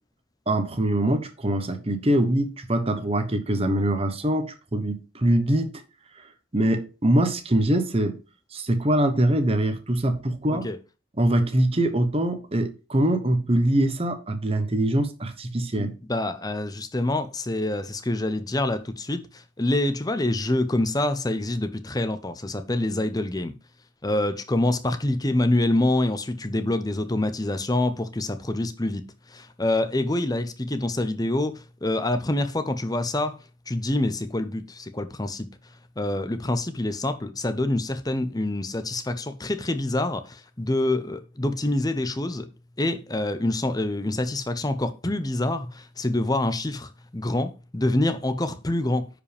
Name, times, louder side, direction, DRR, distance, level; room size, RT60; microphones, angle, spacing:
voice 1, 0.5-5.7 6.2-6.3 6.5-8.2 8.5-10.7 11.2-15.9, right 1 dB, 30° right, 1.0 m, -23 dB
voice 2, 15.8-23.5 24.0-29.0 29.3-33.4 33.7-35.5 36.0-42.5 42.8-49.1, left 1 dB, 20° left, 0.7 m, -26 dB
9.9 x 5.1 x 3.4 m
head